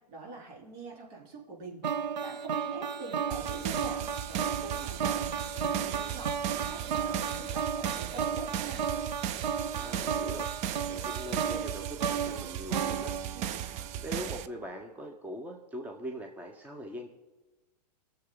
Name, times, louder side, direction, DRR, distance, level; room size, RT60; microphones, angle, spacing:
voice 1, 0.1-1.8 2.2-5.3 5.5-8.8 13.3-13.6, right 4 dB, 55° right, -2 dB, 3.8 m, -44 dB
sound 1, 1.8-14.0, right 7 dB, 85° right, 0.7 m, -34 dB
sound 2, 3.3-14.5, right 10 dB, 30° right, 0.5 m, -37 dB
voice 2, 9.6-13.1 13.9-17.1, equal, 5° right, 2 dB, 1.0 m, -42 dB
19.5 x 7.0 x 3.9 m, 1.1 s
hypercardioid pair, 110°, 21 cm